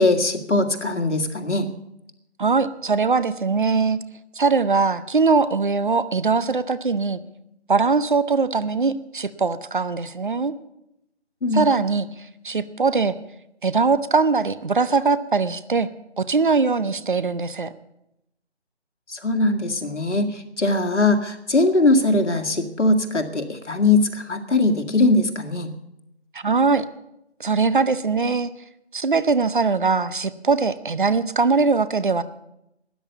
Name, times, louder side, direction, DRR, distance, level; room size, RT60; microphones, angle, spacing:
voice 1, 0.0-1.7 11.4-11.6 19.1-25.7, left 2 dB, 85° left, 6 dB, 2.0 m, -20 dB
voice 2, 2.4-4.0 4.4-7.2 7.7-10.5 11.5-12.1 12.4-13.1 13.6-15.9 16.2-17.7 26.3-26.9 27.4-28.5 28.9-32.2, right 4 dB, 45° right, 14 dB, 0.7 m, -21 dB
13.0 x 9.6 x 8.2 m, 0.84 s
figure-of-eight pair, 165°, 34 cm